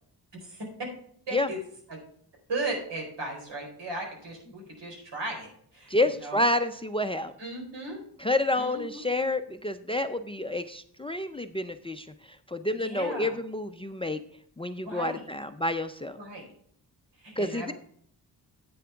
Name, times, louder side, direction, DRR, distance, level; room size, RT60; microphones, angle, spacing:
voice 1, 1.3-1.6 1.9-2.0 2.5-6.5 7.4-8.0 8.5-9.0 12.8-13.4 14.8-15.3 16.2-16.4 17.1-17.7, right 2 dB, 85° right, 1 dB, 4.4 m, -36 dB
voice 2, 5.9-7.3 8.2-12.1 12.5-14.2 14.6-16.2 17.4-17.7, left 1 dB, 15° left, 10 dB, 0.4 m, -29 dB
10.5 x 8.6 x 3.4 m, 0.63 s
wide cardioid pair, 175°, 41 cm